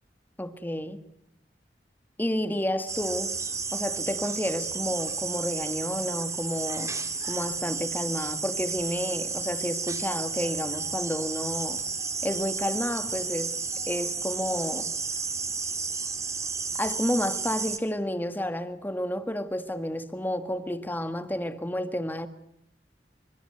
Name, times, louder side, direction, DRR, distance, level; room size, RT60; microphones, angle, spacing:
voice 1, 0.4-1.0 2.2-3.4 3.7-6.9 7.3-11.8 12.2-13.6 13.9-14.9 16.7-22.3, left 1 dB, 10° left, 1.7 m, -31 dB
sound 1, 2.9-17.8, right 4 dB, 20° right, 2.0 m, -32 dB
26.5 x 25.5 x 8.1 m
head